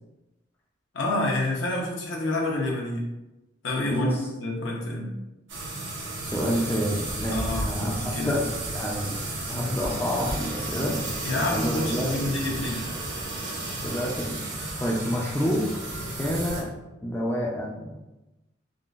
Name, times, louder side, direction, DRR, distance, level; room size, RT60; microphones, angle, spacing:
voice 1, 0.9-3.0 3.6-5.1 7.3-8.4 11.2-12.9, left 2 dB, 85° left, -1 dB, 0.7 m, -28 dB
voice 2, 3.9-4.3 6.2-8.4 8.7-11.0 11.4-12.4 13.4-13.5 13.8-14.4 14.8-15.7 16.2-16.7 17.0-18.0, equal, 10° left, -3 dB, 0.3 m, -28 dB
sound 1, 5.5-16.6, right 2 dB, 90° right, 0.9 m, -33 dB
3.7 x 2.0 x 2.4 m, 1.0 s
head